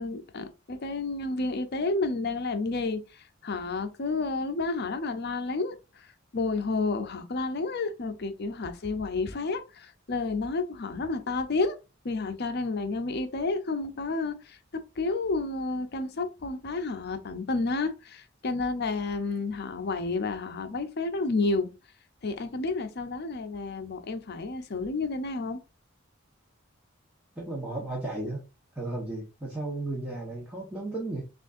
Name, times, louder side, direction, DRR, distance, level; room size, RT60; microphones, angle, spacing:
voice 1, 0.0-5.8 6.3-11.8 12.0-14.6 15.0-21.7 22.2-25.6, left 3 dB, 55° left, 0.6 m, -30 dB
voice 2, 27.4-28.4 28.7-31.2, right 2 dB, 5° right, 1.2 m, -34 dB
6.1 x 2.5 x 2.5 m
head